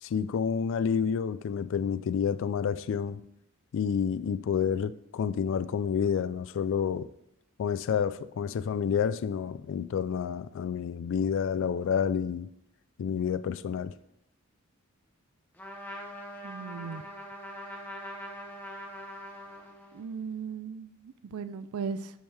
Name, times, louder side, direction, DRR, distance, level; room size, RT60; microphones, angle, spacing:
voice 1, 0.0-3.2 3.7-7.1 7.6-12.5 13.0-13.9, left 7 dB, 60° left, 0.3 m, -29 dB
Trumpet, 15.6-20.1, equal, 10° left, 0.9 m, -42 dB
voice 2, 16.4-17.0 19.9-22.1, right 5 dB, 90° right, 0.4 m, -37 dB
6.3 x 6.3 x 3.4 m
head